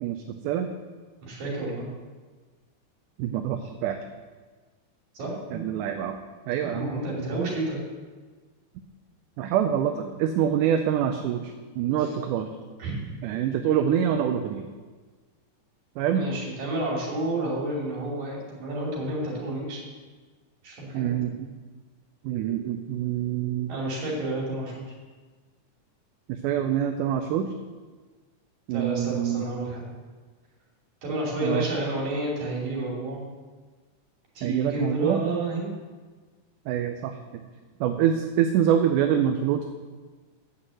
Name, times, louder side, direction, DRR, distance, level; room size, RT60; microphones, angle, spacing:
voice 1, 0.0-0.7 3.2-4.0 5.5-6.2 6.5-6.9 9.4-12.5 13.2-14.7 16.0-16.2 20.9-21.5 22.2-23.7 26.3-27.5 28.7-29.4 31.4-31.7 34.4-35.2 36.7-37.2 37.8-39.6, right 9 dB, 85° right, 6 dB, 2.1 m, -25 dB
voice 2, 1.2-1.9 5.1-5.6 6.6-7.8 12.0-12.1 12.8-13.2 16.0-19.8 20.6-21.2 23.7-24.8 28.7-29.9 31.0-33.3 34.4-35.7, right 2 dB, 65° right, -3 dB, 4.0 m, -30 dB
9.7 x 6.0 x 7.6 m, 1.4 s
omnidirectional pair, 3.6 m